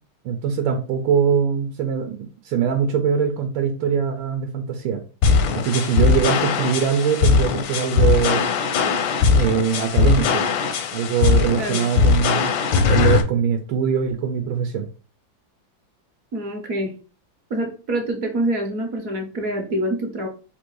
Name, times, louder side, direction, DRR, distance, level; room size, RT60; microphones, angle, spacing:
voice 1, 0.2-2.2 2.4-5.0 5.5-8.4 9.4-10.4 10.9-12.5 12.9-14.8, right 7 dB, 85° right, 5 dB, 1.4 m, -22 dB
sound 1, 5.2-13.2, left 5 dB, 90° left, 1.5 m, -19 dB
voice 2, 11.6-11.9 16.3-16.9 17.5-20.3, right 1 dB, 55° right, 2 dB, 1.1 m, -26 dB
3.8 x 2.6 x 4.6 m, 0.35 s
omnidirectional pair, 2.1 m